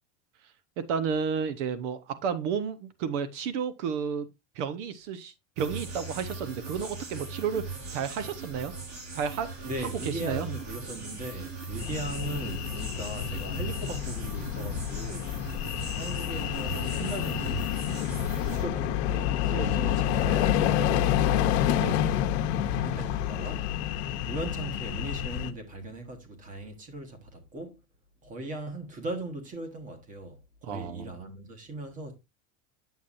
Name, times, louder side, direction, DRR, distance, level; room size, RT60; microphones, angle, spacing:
voice 1, 0.8-4.3 4.5-8.7 9.1-10.5 19.5-19.7 21.8-22.0 30.6-31.1, right 6 dB, 70° right, 1.0 m, -32 dB
sound 1, 5.6-18.6, right 4 dB, 45° right, 4.6 m, -39 dB
voice 2, 9.6-15.4 15.9-17.6 18.5-21.7 22.6-23.8 24.3-27.8 28.2-32.2, right 1 dB, 20° right, 1.4 m, -38 dB
sound 2, 11.8-25.5, left 11 dB, 55° left, 0.9 m, -28 dB
9.2 x 7.2 x 2.6 m
cardioid pair, 180°, 38 cm